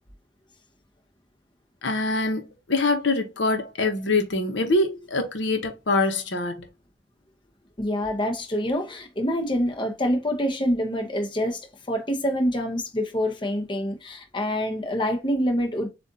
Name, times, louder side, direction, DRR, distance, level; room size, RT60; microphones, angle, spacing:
voice 1, 1.8-6.6, left 2 dB, 75° left, 1.0 m, -24 dB
voice 2, 7.8-15.9, equal, 25° left, 0.9 m, -26 dB
7.4 x 2.6 x 2.7 m
head